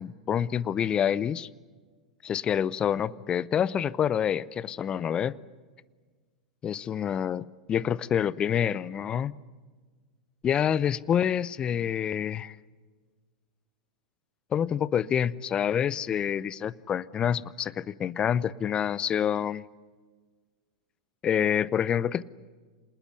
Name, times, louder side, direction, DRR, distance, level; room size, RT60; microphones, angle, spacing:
voice 1, 0.0-1.5 2.2-5.4 6.6-9.3 10.4-12.6 14.5-19.6 21.2-22.2, left 9 dB, 25° left, 20 dB, 0.7 m, -27 dB
27.0 x 20.0 x 9.8 m, 1.4 s
figure-of-eight pair, 95°, 3 cm